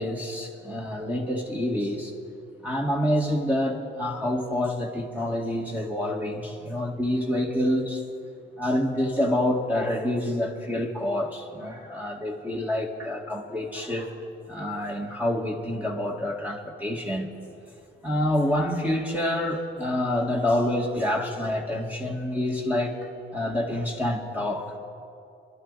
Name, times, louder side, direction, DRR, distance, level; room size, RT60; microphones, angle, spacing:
voice 1, 0.0-2.1 2.6-8.0 8.6-14.1 14.5-17.3 18.0-23.0 23.3-24.8, left 1 dB, 10° right, -1 dB, 2.1 m, -27 dB
28.0 x 11.5 x 4.2 m, 2.5 s
cardioid pair, 90°, 20 cm